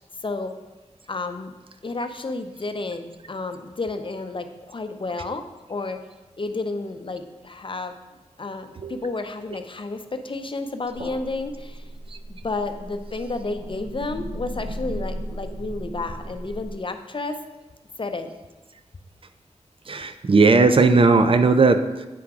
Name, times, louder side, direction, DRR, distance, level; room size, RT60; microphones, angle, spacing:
voice 1, 0.2-0.5 1.1-1.5 1.8-5.4 5.7-6.0 6.4-7.9 8.4-11.9 12.3-17.4 18.0-18.3, left 3 dB, 45° left, 7 dB, 0.6 m, -31 dB
sound 1, 10.9-16.7, equal, 85° right, 1.1 m, -36 dB
voice 2, 19.9-22.1, right 3 dB, 50° right, 9 dB, 0.5 m, -17 dB
8.5 x 3.6 x 4.8 m, 1.1 s
cardioid pair, 55°, 12 cm